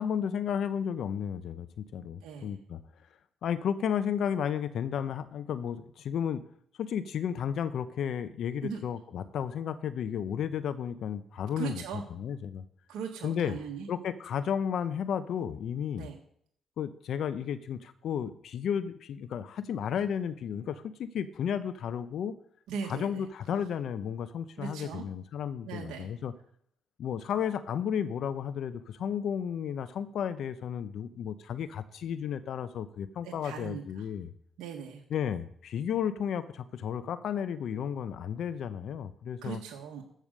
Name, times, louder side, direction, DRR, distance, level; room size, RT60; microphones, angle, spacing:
voice 1, 0.0-2.8 3.4-6.4 6.8-11.8 12.1-12.6 13.2-13.6 13.9-16.1 16.8-22.4 22.8-26.3 27.0-34.3 35.1-39.6, left 8 dB, 70° left, 13 dB, 0.6 m, -33 dB
voice 2, 2.2-2.5 8.6-8.8 11.6-12.0 12.9-13.9 16.0-16.1 22.7-23.2 24.6-25.0 25.6-26.1 33.2-33.8 34.6-35.0 39.4-40.0, right 7 dB, 85° right, 1 dB, 1.3 m, -39 dB
14.0 x 5.0 x 6.4 m, 0.67 s
cardioid pair, 80°, 0 cm